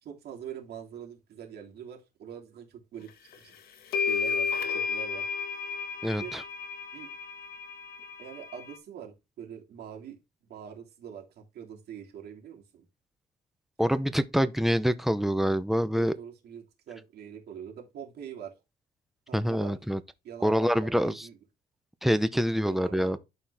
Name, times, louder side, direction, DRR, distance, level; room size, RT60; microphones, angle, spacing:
voice 1, 0.0-3.1 3.3-3.6 4.0-5.2 6.2-6.4 6.9-7.1 8.2-10.2 10.5-12.8 15.9-18.5 19.3-19.8 20.2-21.4 22.5-23.2, right 8 dB, 75° right, 3.0 m, -44 dB
sound 1, 3.3-3.4 3.9-8.8, left 5 dB, 70° left, 1.6 m, -32 dB
voice 2, 6.0-6.4 13.8-16.1 19.3-20.0 20.4-21.3 22.0-23.2, equal, ahead, 0.7 m, -26 dB
11.5 x 4.5 x 3.4 m
cardioid pair, 120°, 17 cm